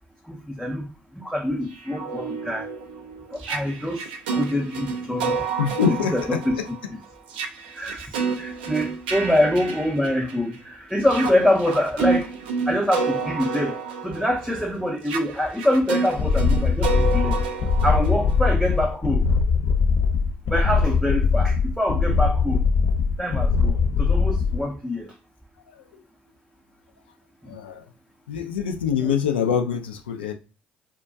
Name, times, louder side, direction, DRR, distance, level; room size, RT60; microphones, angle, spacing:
voice 1, 0.2-2.7 3.3-4.0 4.3-5.4 6.1-6.6 6.9-7.0 7.7-12.3 12.7-13.8 14.0-17.4 17.8-19.3 20.5-22.6 23.2-25.1 27.5-27.6 29.0-29.2, left 1 dB, ahead, 0.5 m, -25 dB
sound 1, 1.7-10.6 11.0-18.8, right 5 dB, 80° right, 0.4 m, -30 dB
voice 2, 5.6-6.6 27.5-27.8 28.3-30.3, left 7 dB, 85° left, 0.3 m, -25 dB
sound 2, 16.2-24.6, left 5 dB, 50° left, 0.6 m, -21 dB
2.2 x 2.1 x 2.6 m
hypercardioid pair, 50°, 5 cm